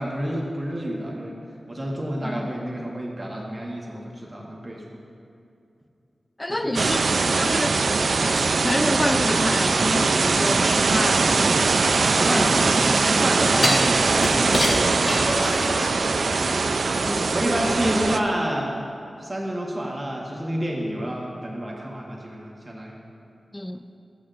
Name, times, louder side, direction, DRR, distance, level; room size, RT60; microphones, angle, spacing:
voice 1, 0.0-1.4 1.7-5.0 6.5-6.9 12.1-14.6 16.2-16.5 17.3-18.7 19.2-23.0, equal, 25° right, -3 dB, 1.1 m, -29 dB
voice 2, 6.4-7.0 7.4-7.8 8.3-11.7 12.0-12.7 13.5-13.7 15.4-16.2 17.1-17.3 23.5-23.8, left 1 dB, 20° left, 8 dB, 0.4 m, -29 dB
sound 1, 6.7-18.2, right 4 dB, 75° right, 0.3 m, -21 dB
sound 2, 11.6-12.8 13.6-16.0 16.4-16.5, left 1 dB, 60° left, 1.4 m, -27 dB
12.5 x 8.7 x 2.5 m, 2.6 s
wide cardioid pair, 80°, 0 cm